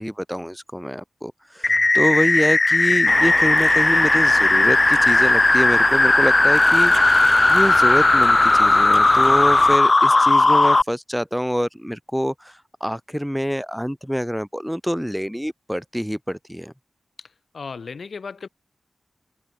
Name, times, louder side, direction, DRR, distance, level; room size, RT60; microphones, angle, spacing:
voice 1, 0.0-6.9 7.5-16.7, equal, ahead, 6.3 m, -26 dB
sound 1, 1.6-10.8, left 3 dB, 35° left, 1.6 m, -16 dB
sound 2, 3.1-9.8, right 4 dB, 55° right, 1.2 m, -27 dB
voice 2, 17.2-18.5, left 5 dB, 75° left, 5.9 m, -36 dB
wide cardioid pair, 100°, 0 cm